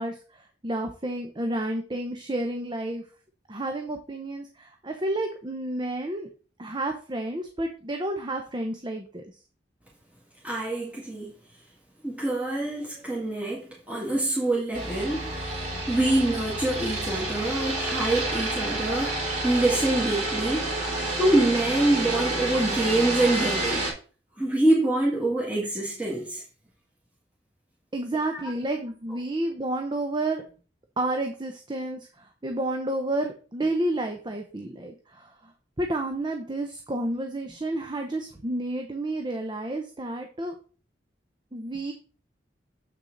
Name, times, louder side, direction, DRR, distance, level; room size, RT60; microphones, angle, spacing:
voice 1, 0.0-3.0 3.5-6.3 6.6-9.2 12.9-13.0 27.9-30.4 31.0-35.5 35.8-40.5 41.5-41.9, right 1 dB, 25° right, 0.8 m, -30 dB
voice 2, 10.4-11.3 12.0-19.1 19.4-20.7 21.2-23.9 24.4-26.4 28.3-28.5, right 2 dB, 10° right, 2.1 m, -25 dB
sound 1, 14.7-23.9, right 2 dB, 40° right, 3.6 m, -29 dB
7.7 x 6.2 x 3.9 m
head